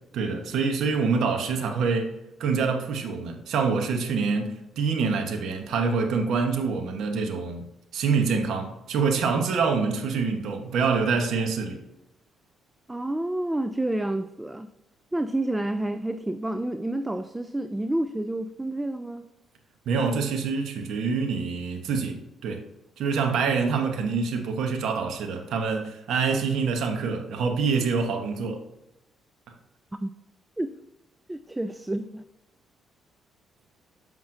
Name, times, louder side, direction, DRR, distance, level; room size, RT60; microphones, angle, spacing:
voice 1, 0.1-2.1 2.4-7.7 7.9-11.8 19.9-22.6 23.0-28.6, right 5 dB, 75° right, 0.9 m, -26 dB
voice 2, 12.9-14.7 15.1-19.3 30.0-30.1 30.6-30.7 31.3-32.2, right 1 dB, 10° right, 0.3 m, -29 dB
7.1 x 6.1 x 2.5 m
cardioid pair, 90°, 0 cm